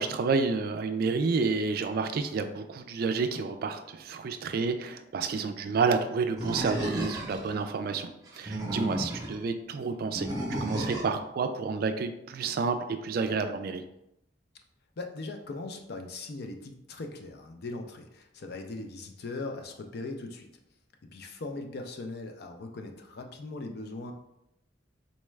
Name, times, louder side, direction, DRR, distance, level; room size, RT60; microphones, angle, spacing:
voice 1, 0.0-10.3 10.6-13.8, right 4 dB, 55° right, 8 dB, 0.3 m, -30 dB
Animal, 6.4-7.5 8.3-9.4 10.1-11.2, right 1 dB, 20° right, 0.7 m, -33 dB
voice 2, 15.0-20.5 21.1-24.1, left 2 dB, 60° left, 4 dB, 0.5 m, -39 dB
4.1 x 2.3 x 3.1 m, 0.83 s
head